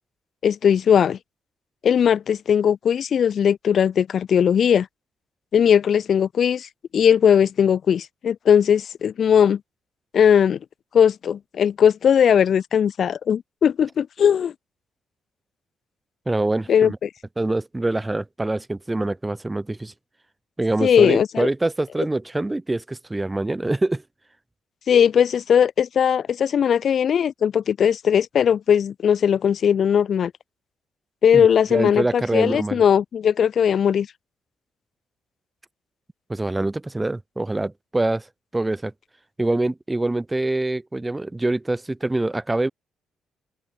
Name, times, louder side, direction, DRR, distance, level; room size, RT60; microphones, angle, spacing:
voice 1, 0.4-1.2 1.8-4.9 5.5-9.6 10.1-10.6 10.9-14.5 16.7-17.1 20.8-21.5 24.9-30.3 31.2-34.1, left 8 dB, 55° left, 0.8 m, -19 dB
voice 2, 16.3-17.0 17.4-19.9 20.6-24.0 31.3-32.8 36.3-38.3 38.5-38.9 39.4-42.7, right 2 dB, 15° right, 3.4 m, -25 dB
open air
cardioid pair, 90°, 0 cm